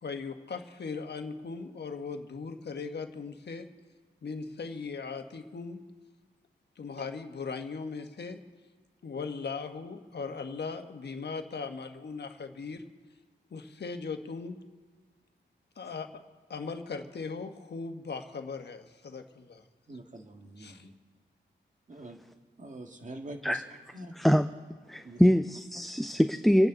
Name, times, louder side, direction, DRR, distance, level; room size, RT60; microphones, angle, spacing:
voice 1, 0.0-3.7 4.2-5.8 6.8-8.4 9.0-12.8 13.5-14.6 15.8-16.2 16.5-19.6 20.6-20.9, left 4 dB, 60° left, 6 dB, 1.4 m, -38 dB
voice 2, 19.9-20.9 21.9-22.2 22.6-23.6 23.9-24.1 25.0-25.2, right 2 dB, 40° right, 3 dB, 1.9 m, -44 dB
voice 3, 24.2-24.5 24.9-26.7, equal, ahead, 8 dB, 0.5 m, -24 dB
28.5 x 9.5 x 3.9 m, 1.4 s
cardioid pair, 75°, 19 cm